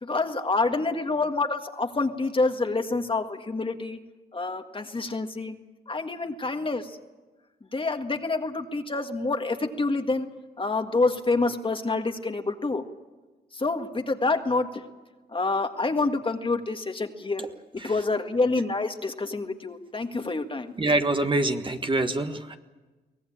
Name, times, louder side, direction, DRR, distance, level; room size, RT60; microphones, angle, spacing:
voice 1, 0.0-4.0 4.3-5.6 5.9-7.0 7.7-10.3 10.6-12.9 13.5-14.8 15.3-17.5 17.7-20.7, left 3 dB, 30° left, 6 dB, 1.8 m, -27 dB
voice 2, 20.8-22.6, right 2 dB, 30° right, 6 dB, 1.6 m, -25 dB
23.5 x 18.0 x 8.7 m, 1.2 s
cardioid pair, 75°, 18 cm